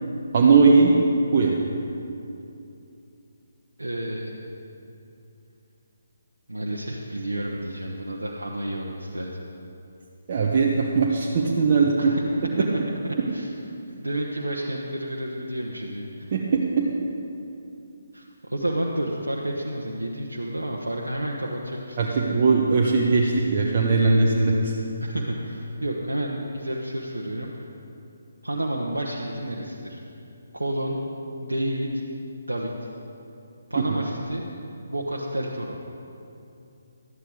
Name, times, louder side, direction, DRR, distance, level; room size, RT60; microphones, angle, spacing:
voice 1, 0.3-0.9 1.3-1.6 10.3-12.1 16.3-16.8 22.0-24.8, right 4 dB, 40° right, -3 dB, 1.0 m, -19 dB
voice 2, 3.8-4.4 6.5-9.4 12.0-12.2 13.0-13.5 13.9-16.3 18.1-22.5 25.0-27.7 28.4-30.0 30.5-31.0 31.4-32.0 32.4-32.9 33.7-34.4 34.9-35.8, right 1 dB, 90° right, -2 dB, 1.0 m, -30 dB
12.5 x 9.0 x 4.9 m, 2.7 s
figure-of-eight pair, 145°, 0 cm